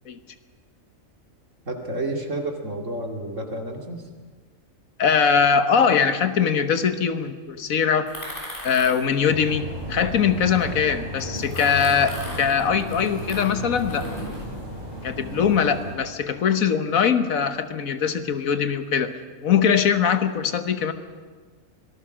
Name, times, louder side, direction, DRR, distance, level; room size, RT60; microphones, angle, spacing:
voice 1, 1.7-4.0, right 1 dB, 65° right, 2 dB, 2.8 m, -30 dB
voice 2, 5.0-8.1 8.6-14.1 15.0-19.2 19.4-20.9, left 7 dB, 80° left, 10 dB, 1.6 m, -21 dB
sound 1, 8.1-10.7 11.2-14.4, left 1 dB, 40° left, 6.9 m, -37 dB
sound 2, 9.3-15.9, right 1 dB, 30° right, 6.6 m, -34 dB
25.0 x 18.5 x 6.2 m, 1.5 s
omnidirectional pair, 1.4 m